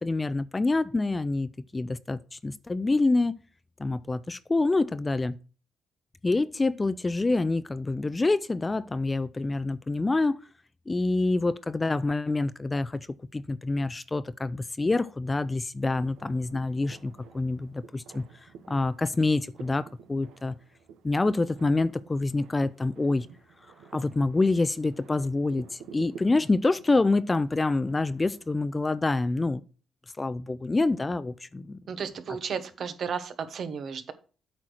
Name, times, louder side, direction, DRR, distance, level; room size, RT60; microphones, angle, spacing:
voice 1, 0.0-3.4 3.8-5.4 6.2-10.4 10.9-13.1 13.3-18.2 18.7-20.6 21.0-23.3 23.9-29.6 30.2-31.8, left 3 dB, 20° left, 0.4 m, -26 dB
sound 1, 15.9-28.6, right 7 dB, 85° right, 1.0 m, -51 dB
voice 2, 31.9-34.1, right 6 dB, 60° right, 1.0 m, -33 dB
8.4 x 4.5 x 6.4 m
cardioid pair, 90°, 0 cm